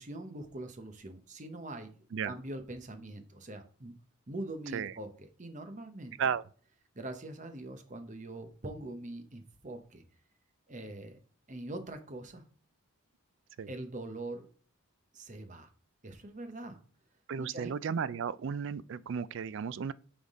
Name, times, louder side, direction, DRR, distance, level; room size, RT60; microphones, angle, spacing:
voice 1, 0.0-3.9 4.3-6.2 6.9-10.0 10.7-11.2 11.5-12.4 13.7-14.5 15.1-15.7 16.0-16.8 17.4-17.7, right 1 dB, 35° right, 0.9 m, -43 dB
voice 2, 17.3-19.9, right 7 dB, 55° right, 0.3 m, -34 dB
9.3 x 3.6 x 3.6 m
head